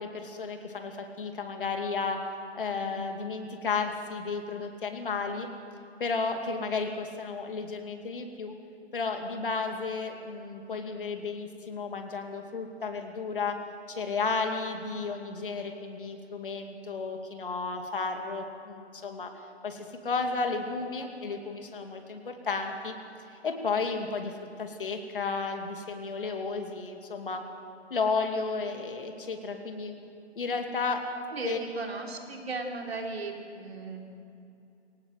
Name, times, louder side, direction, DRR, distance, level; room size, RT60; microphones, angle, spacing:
voice 1, 0.0-2.2 2.6-5.5 6.0-8.5 8.9-13.6 13.9-19.3 19.6-23.0 23.3-27.4 27.9-29.9 30.4-31.0 31.4-31.6, left 4 dB, 50° left, 4 dB, 2.6 m, -33 dB
voice 2, 31.3-34.0, right 3 dB, 60° right, 1 dB, 3.9 m, -36 dB
23.0 x 18.5 x 7.7 m, 2.7 s
hypercardioid pair, 170°, 35 cm